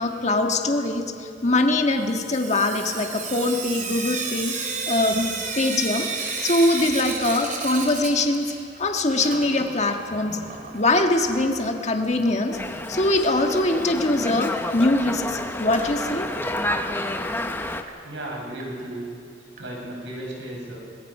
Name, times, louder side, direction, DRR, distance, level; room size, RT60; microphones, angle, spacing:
voice 1, 0.0-4.5 4.9-5.3 5.6-6.1 6.4-8.5 8.8-10.4 10.7-12.6 12.9-16.3, left 2 dB, 40° left, 3 dB, 1.6 m, -22 dB
Sink (filling or washing) / Drip, 2.1-8.8 9.1-11.0 12.2-12.3 12.6-12.7 12.9-13.0 15.9-16.0 16.6-16.7 17.2-17.3 17.9-18.0 18.6-18.7 19.6-19.7, right 4 dB, 45° right, 3.1 m, -32 dB
Dog, 12.5-17.8, left 1 dB, 10° left, 0.9 m, -30 dB
voice 2, 18.0-19.0 19.6-20.8, right 1 dB, 75° right, -1 dB, 5.4 m, -34 dB
26.0 x 20.5 x 5.5 m, 2.6 s
head